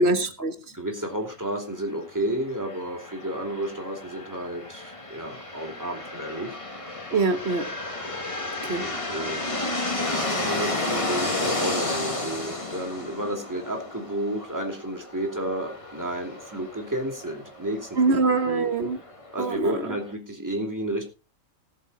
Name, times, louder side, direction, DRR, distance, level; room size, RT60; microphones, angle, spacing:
voice 1, 0.0-0.5 7.1-7.7 8.7-8.9 18.0-19.0 19.4-19.8, right 3 dB, 55° right, 1.6 m, -23 dB
voice 2, 0.7-6.6 8.6-9.6 10.0-18.2 18.4-18.7 19.3-21.0, right 1 dB, 15° right, 2.9 m, -32 dB
sound 1, 2.5-20.1, left 2 dB, 25° left, 1.8 m, -33 dB
18.5 x 7.0 x 4.1 m
omnidirectional pair, 1.3 m